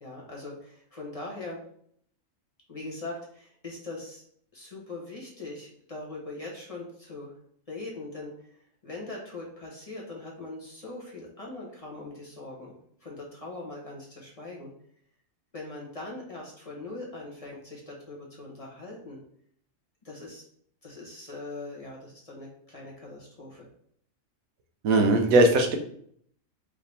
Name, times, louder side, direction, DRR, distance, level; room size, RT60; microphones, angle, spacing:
voice 1, 0.0-1.6 2.7-4.2 4.5-7.3 7.7-12.7 13.0-14.7 15.5-19.2 20.0-20.5 20.8-23.7, left 2 dB, 30° left, -3 dB, 0.9 m, -41 dB
voice 2, 24.8-25.8, right 2 dB, 85° right, 4 dB, 1.1 m, -19 dB
4.9 x 2.8 x 3.3 m, 0.65 s
omnidirectional pair, 1.4 m